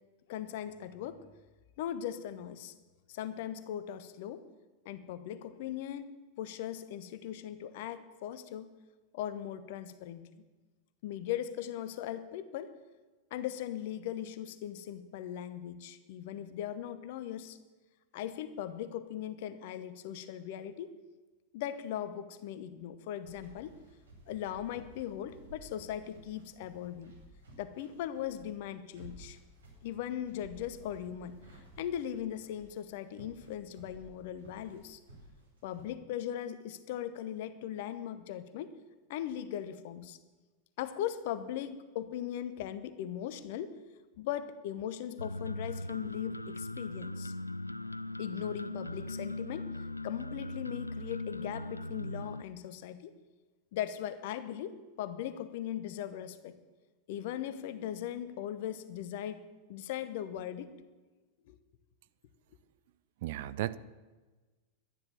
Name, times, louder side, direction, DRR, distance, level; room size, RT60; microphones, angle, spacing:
voice 1, 0.3-1.2 1.8-2.7 3.1-4.4 4.8-6.1 6.4-8.7 9.1-10.3 11.0-12.7 13.3-17.6 18.1-21.0 21.5-23.7 24.3-27.1 27.6-29.4 29.8-31.4 31.8-35.0 35.6-38.7 39.1-40.2 40.8-43.8 44.2-47.3 48.2-49.7 50.0-53.1 53.7-56.6 57.1-60.7 61.5-61.6, left 10 dB, 50° left, 12 dB, 1.0 m, -39 dB
sound 1, 23.2-35.8, right 2 dB, 75° right, 4.9 m, -55 dB
sound 2, 45.2-52.4, left 1 dB, 85° left, 0.3 m, -39 dB
voice 2, 63.2-63.8, right 15 dB, 50° right, 17 dB, 0.5 m, -34 dB
12.0 x 10.5 x 7.1 m, 1.3 s
figure-of-eight pair, 90°, 0 cm